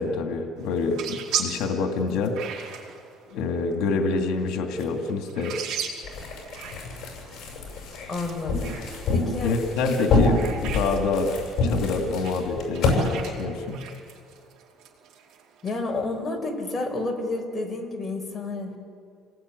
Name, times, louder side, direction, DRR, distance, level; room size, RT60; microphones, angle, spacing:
voice 1, 0.0-2.4 3.3-5.6 9.4-11.3 11.6-13.8, left 4 dB, 80° left, 3 dB, 2.4 m, -26 dB
sound 1, 0.6-15.8, right 8 dB, 70° right, 5.0 m, -38 dB
sound 2, 6.0-13.0, left 3 dB, 50° left, 7.9 m, -27 dB
voice 2, 8.1-8.8 9.1-9.5 15.6-18.8, left 2 dB, 20° left, 1 dB, 4.9 m, -30 dB
29.0 x 20.0 x 9.7 m, 2.3 s
cardioid pair, 150°, 0 cm